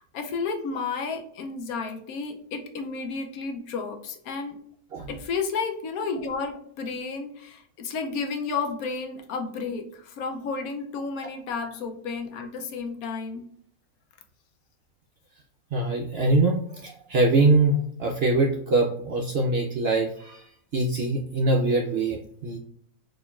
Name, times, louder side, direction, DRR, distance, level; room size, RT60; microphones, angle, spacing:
voice 1, 0.0-4.6 5.1-13.4, left 4 dB, 75° left, 4 dB, 1.1 m, -32 dB
voice 2, 15.7-20.5 20.7-22.6, right 2 dB, 65° right, 0 dB, 0.6 m, -23 dB
4.3 x 3.0 x 2.3 m, 0.66 s
omnidirectional pair, 1.5 m